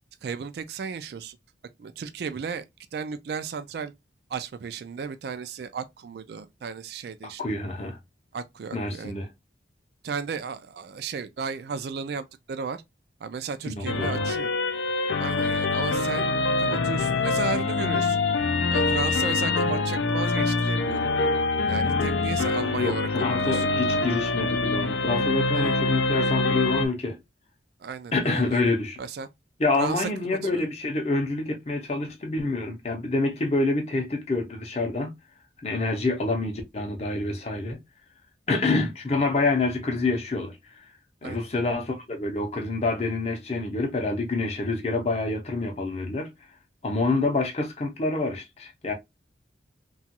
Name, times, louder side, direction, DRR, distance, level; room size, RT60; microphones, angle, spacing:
voice 1, 0.2-1.4 1.8-2.6 2.9-3.9 4.3-7.4 8.3-9.1 10.0-12.8 13.2-14.5 15.2-18.2 18.7-21.1 21.7-23.1 23.4-23.6 25.5-25.8 27.8-28.7 29.0-29.3 29.8-30.1 30.4-30.7 41.2-41.5, right 6 dB, 55° right, 0.3 m, -34 dB
voice 2, 7.2-8.0 8.7-9.3 13.7-14.2 22.8-27.2 28.1-29.0 29.6-35.1 35.6-37.8 38.5-40.8 41.2-46.3 46.8-48.9, left 3 dB, 35° left, 0.6 m, -27 dB
sound 1, 13.9-26.9, left 3 dB, 75° left, 0.4 m, -25 dB
2.9 x 2.3 x 2.8 m
head